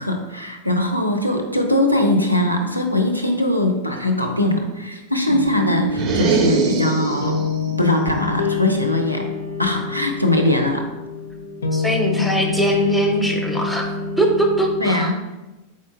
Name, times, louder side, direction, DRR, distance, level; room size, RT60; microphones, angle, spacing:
voice 1, 0.0-7.4 7.8-9.3 9.6-10.9 14.8-15.1, left 1 dB, 90° right, 4 dB, 0.5 m, -21 dB
sound 1, 5.3-14.8, left 3 dB, 70° left, 0.4 m, -26 dB
sound 2, 5.9-7.5, right 4 dB, 40° right, 0.5 m, -22 dB
voice 2, 11.7-13.9 14.2-15.1, right 1 dB, 5° left, 1 dB, 0.6 m, -21 dB
4.4 x 3.6 x 2.5 m, 1.1 s
figure-of-eight pair, 90°, 0 cm